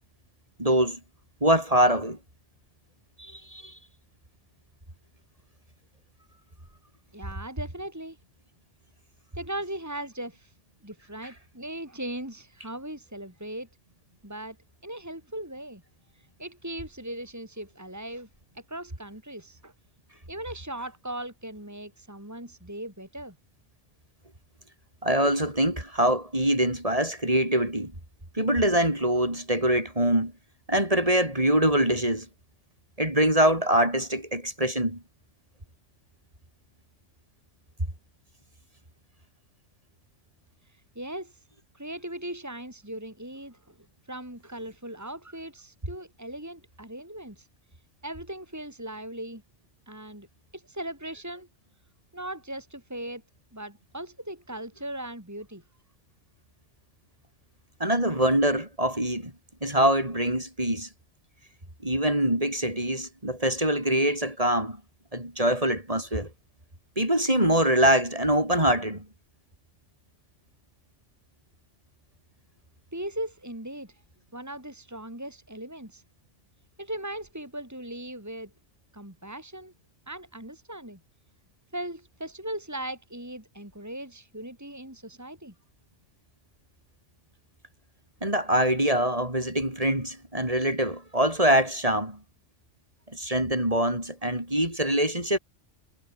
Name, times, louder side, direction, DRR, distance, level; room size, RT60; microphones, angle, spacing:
voice 1, 0.6-1.0 1.4-2.2 3.2-3.8 25.0-27.9 28.3-30.3 30.7-32.3 33.0-35.0 57.8-59.3 59.6-60.9 61.8-64.8 65.1-66.3 67.0-69.0 88.2-92.2 93.1-95.4, right 1 dB, 30° right, 5.1 m, -24 dB
voice 2, 7.1-8.2 9.3-10.5 10.8-13.7 14.2-14.6 14.8-15.8 16.4-18.3 18.5-19.7 20.3-23.3 41.0-41.4 41.7-43.7 44.1-47.5 48.0-49.4 49.9-50.3 50.5-51.5 52.1-53.2 53.5-55.6 72.9-73.9 74.3-76.0 76.8-78.5 78.9-79.7 80.1-81.0 81.7-85.5, right 1 dB, 15° right, 4.3 m, -38 dB
omnidirectional pair, 1.2 m